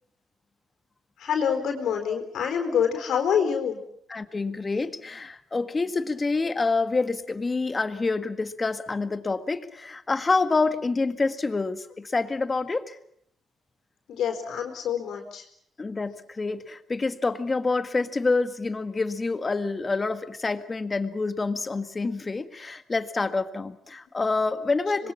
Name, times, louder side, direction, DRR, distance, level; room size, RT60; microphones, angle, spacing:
voice 1, 1.2-3.8 14.1-15.4 25.0-25.1, left 7 dB, 75° left, 5 dB, 4.3 m, -26 dB
voice 2, 4.1-13.0 15.8-25.1, left 3 dB, 25° left, 11 dB, 1.8 m, -27 dB
26.0 x 22.0 x 7.4 m, 0.68 s
cardioid pair, 90°, 0 cm